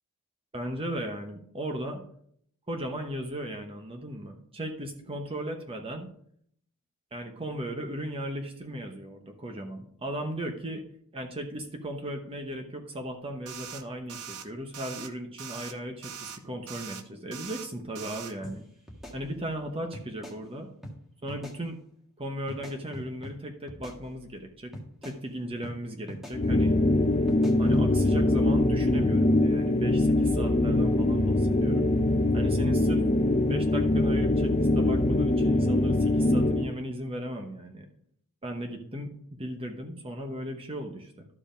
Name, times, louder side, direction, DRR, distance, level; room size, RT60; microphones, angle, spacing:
voice 1, 0.5-2.0 2.7-6.1 7.1-10.8 11.1-18.6 19.1-20.7 21.2-21.8 22.2-24.7 25.0-26.8 27.6-31.9 32.3-33.0 33.5-37.9 38.4-39.1 39.4-41.3, equal, 25° right, 4 dB, 0.9 m, -36 dB
sound 1, 13.5-13.8 14.1-14.4 14.7-15.1 15.4-15.7 16.0-16.4 16.7-17.0 17.3-17.7 18.0-18.3, right 8 dB, 80° right, 0.9 m, -41 dB
sound 2, 18.4-18.6 18.9-19.6 19.9-20.4 20.8-21.0 21.3-21.6 22.5-23.4 23.7-24.4 24.7-25.2 25.6-25.8 26.1-26.4 27.3-27.9, equal, ahead, 1.6 m, -43 dB
sound 3, 26.3-36.7, left 2 dB, 30° left, 0.6 m, -23 dB
12.0 x 4.9 x 5.1 m, 0.66 s
head